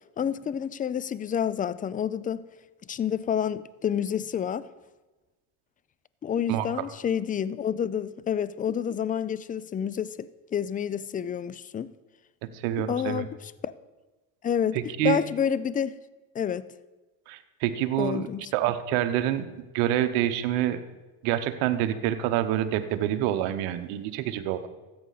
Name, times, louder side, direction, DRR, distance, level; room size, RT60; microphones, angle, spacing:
voice 1, 0.2-2.5 2.9-4.7 6.2-11.9 12.9-13.7 14.4-16.0 16.3-16.7 18.0-18.5, left 8 dB, 20° left, 0.4 m, -29 dB
voice 2, 12.4-13.2 14.7-15.2 17.3-19.5 19.7-20.8 21.2-24.7, right 12 dB, 75° right, 0.9 m, -27 dB
13.5 x 8.6 x 4.0 m
supercardioid pair, 75°, 44 cm